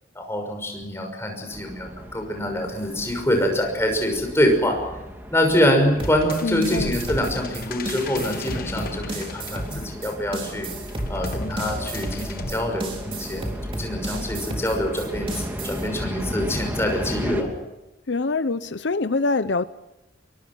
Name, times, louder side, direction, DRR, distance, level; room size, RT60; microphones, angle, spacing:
voice 1, 0.2-4.8 5.3-10.7 11.1-13.5 13.8-17.5, equal, 15° left, 3 dB, 5.9 m, -25 dB
sound 1, 1.5-17.4, equal, 10° right, 2.6 m, -35 dB
sound 2, 6.0-10.1 10.9-12.5, left 2 dB, 50° left, 1.3 m, -35 dB
sound 3, 6.0-15.9, right 2 dB, 30° right, 3.7 m, -34 dB
voice 2, 6.4-7.0 18.1-19.6, left 3 dB, 75° left, 13 dB, 0.7 m, -24 dB
23.5 x 23.5 x 6.2 m, 0.98 s
head